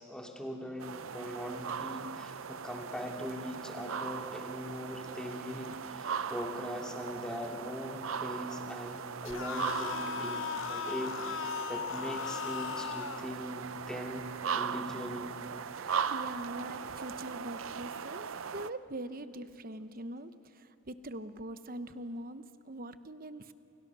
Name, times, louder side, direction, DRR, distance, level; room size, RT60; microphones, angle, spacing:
voice 1, 0.0-14.3 14.5-15.3, equal, 5° left, 0 dB, 2.6 m, -40 dB
sound 1, 0.8-18.7, right 6 dB, 80° right, 0.6 m, -39 dB
sound 2, 9.2-13.3, left 6 dB, 75° left, 0.8 m, -37 dB
voice 2, 15.8-18.2 18.5-23.5, right 1 dB, 45° right, 11 dB, 0.9 m, -43 dB
29.5 x 28.0 x 6.2 m, 2.9 s
head